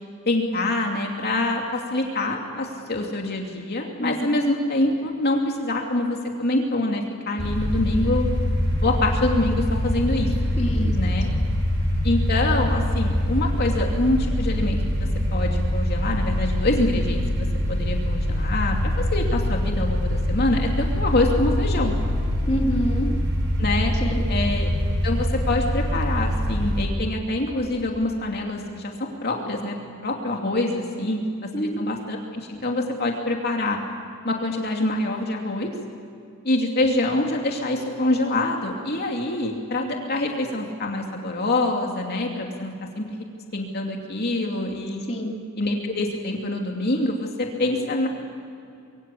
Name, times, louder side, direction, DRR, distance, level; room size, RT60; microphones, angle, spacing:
voice 1, 0.3-8.3 8.8-10.3 10.9-11.3 12.0-21.9 23.6-23.9 24.3-24.7 25.0-28.9 29.2-29.7 30.0-33.8 34.2-35.7 36.4-43.2 43.5-45.0 45.6-48.1, left 2 dB, 50° left, 1 dB, 2.8 m, -25 dB
voice 2, 4.0-4.4 10.6-10.9 22.5-23.1 24.0-24.2 31.5-31.8 45.1-45.4, equal, 30° left, 0 dB, 3.0 m, -26 dB
sound 1, 7.4-26.9, left 1 dB, 60° right, 5.9 m, -24 dB
25.5 x 23.5 x 8.5 m, 2.5 s
head